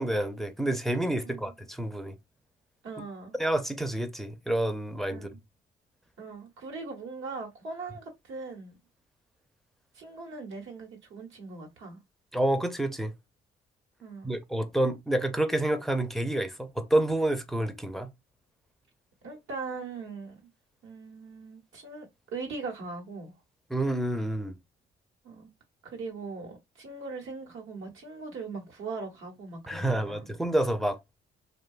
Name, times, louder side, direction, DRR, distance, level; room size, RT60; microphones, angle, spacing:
voice 1, 0.0-2.2 3.4-5.3 12.3-13.1 14.2-18.1 23.7-24.6 29.7-31.0, right 1 dB, ahead, 0.4 m, -28 dB
voice 2, 2.8-3.4 5.1-5.4 6.2-8.8 9.9-12.0 14.0-14.3 19.2-20.5 20.8-22.1 22.3-23.3 25.2-25.5 25.8-30.3, right 4 dB, 80° right, 1.0 m, -40 dB
2.7 x 2.2 x 2.3 m
cardioid pair, 90°, 20 cm